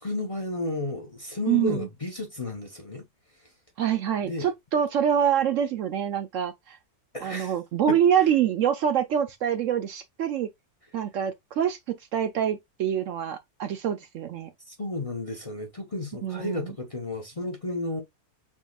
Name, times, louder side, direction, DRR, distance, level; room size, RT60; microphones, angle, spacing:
voice 1, 0.0-3.1 4.2-4.5 7.1-7.5 7.9-8.0 14.7-18.0, left 2 dB, 30° left, 0.8 m, -32 dB
voice 2, 1.5-1.9 3.8-6.8 7.2-10.5 10.9-14.5 16.2-16.7, right 9 dB, 65° right, 0.8 m, -25 dB
6.0 x 3.7 x 2.3 m
omnidirectional pair, 1.6 m